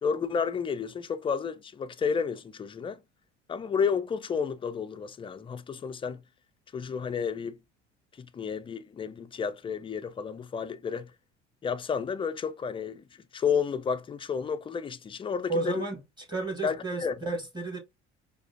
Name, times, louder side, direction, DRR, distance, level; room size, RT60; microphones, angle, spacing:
voice 1, 0.0-3.0 3.5-6.2 6.7-7.6 8.2-11.1 11.6-13.0 13.3-15.8 16.6-17.2, left 6 dB, 15° left, 0.3 m, -31 dB
voice 2, 15.5-16.0 16.3-17.8, right 3 dB, 15° right, 1.8 m, -32 dB
4.8 x 2.3 x 2.5 m
hypercardioid pair, 65°, 32 cm